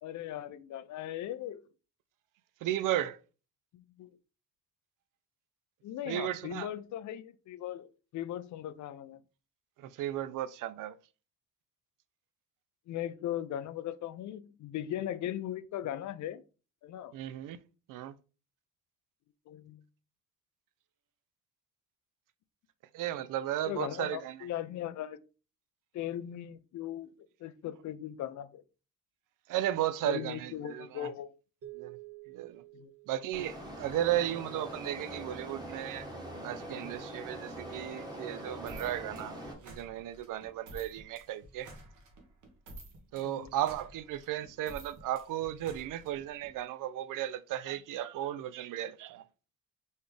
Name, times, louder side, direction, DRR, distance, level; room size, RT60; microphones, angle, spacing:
voice 1, 0.0-1.6 3.7-4.1 5.8-9.2 12.9-16.4 16.8-17.1 19.5-19.8 23.7-25.2 25.9-27.1 27.4-28.6 30.0-31.3 32.7-32.9 43.2-43.5, left 11 dB, 65° left, 0.5 m, -38 dB
voice 2, 2.6-3.2 6.1-6.7 9.8-10.9 17.1-17.6 17.9-18.1 22.9-24.4 29.5-31.1 31.7-32.0 32.3-32.6 33.1-36.1 36.4-39.4 39.6-41.7 43.1-49.2, right 12 dB, 85° right, 0.5 m, -35 dB
sound 1, 31.6-34.2, right 16 dB, 45° right, 0.7 m, -51 dB
sound 2, 33.3-39.5, right 1 dB, 15° right, 1.0 m, -43 dB
sound 3, 38.7-46.5, right 1 dB, 70° right, 1.3 m, -51 dB
4.3 x 3.4 x 3.2 m
cardioid pair, 155°, 31 cm